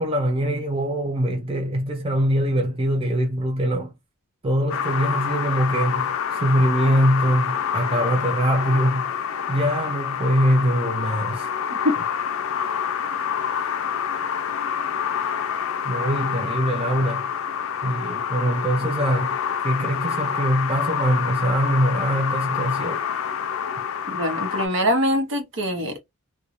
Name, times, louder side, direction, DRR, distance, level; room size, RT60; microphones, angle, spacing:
voice 1, 0.0-3.9 4.4-11.5 13.5-13.7 14.1-14.2 15.8-17.3 17.8-19.4 19.6-23.0, equal, 25° right, 0.5 m, -23 dB
sound 1, 4.7-24.7, left 7 dB, 65° left, 0.4 m, -27 dB
voice 2, 24.1-26.0, equal, 60° right, 0.9 m, -23 dB
3.1 x 2.2 x 2.5 m
head